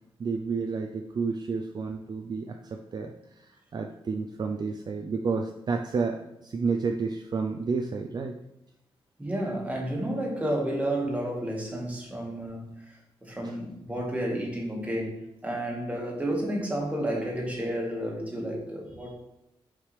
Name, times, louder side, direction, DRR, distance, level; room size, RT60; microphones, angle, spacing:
voice 1, 0.2-8.4 13.4-13.5, right 4 dB, 45° right, 3 dB, 0.4 m, -31 dB
voice 2, 9.2-12.9 13.2-19.1, right 1 dB, 15° right, -2 dB, 1.6 m, -31 dB
6.6 x 4.8 x 3.3 m, 0.88 s
wide cardioid pair, 130°, 10 cm